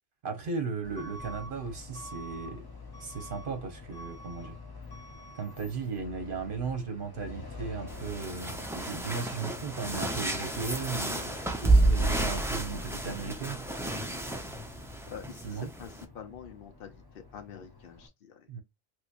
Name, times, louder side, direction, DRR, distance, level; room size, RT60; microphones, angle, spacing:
voice 1, 0.2-2.6 3.0-4.5 5.3-11.3 11.6-13.6 15.4-15.7 18.5-18.6, right 5 dB, 60° right, 1.1 m, -36 dB
Truck / Alarm, 0.8-18.1, left 3 dB, 25° left, 0.8 m, -46 dB
sound 1, 7.9-16.0, right 2 dB, 5° right, 0.4 m, -30 dB
voice 2, 15.1-18.5, left 7 dB, 60° left, 1.0 m, -46 dB
3.2 x 3.1 x 2.5 m
omnidirectional pair, 1.1 m